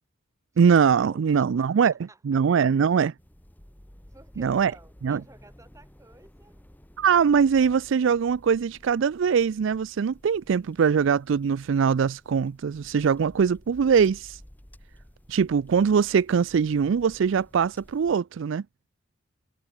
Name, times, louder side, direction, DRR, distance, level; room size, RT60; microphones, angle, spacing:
voice 1, 0.6-1.9 2.3-3.1 4.4-4.7 5.0-5.2 7.0-14.4 15.3-18.6, right 6 dB, 70° right, 0.4 m, -22 dB
voice 2, 1.1-2.6 4.1-6.6, right 2 dB, 15° right, 4.5 m, -53 dB
sound 1, 3.2-18.2, equal, 10° left, 1.4 m, -53 dB
head